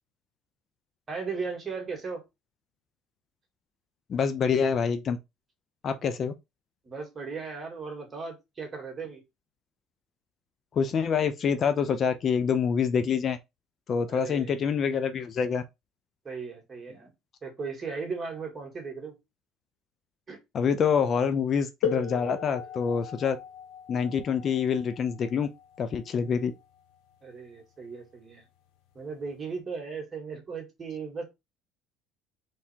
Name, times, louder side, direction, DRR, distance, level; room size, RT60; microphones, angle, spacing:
voice 1, 1.1-2.2 6.8-9.2 14.1-14.7 16.2-17.1 17.4-19.2 20.3-20.4 27.2-28.5 29.0-31.3, right 5 dB, 25° right, 2.1 m, -37 dB
voice 2, 4.1-5.2 5.8-6.3 10.7-13.4 13.9-15.6 20.5-23.4 23.9-25.5 25.8-26.5, left 6 dB, 45° left, 0.7 m, -26 dB
sound 1, 21.8-27.3 28.3-28.4 29.2-29.4, left 7 dB, 80° left, 1.4 m, -37 dB
3.6 x 3.2 x 4.4 m
supercardioid pair, 100°, 0 cm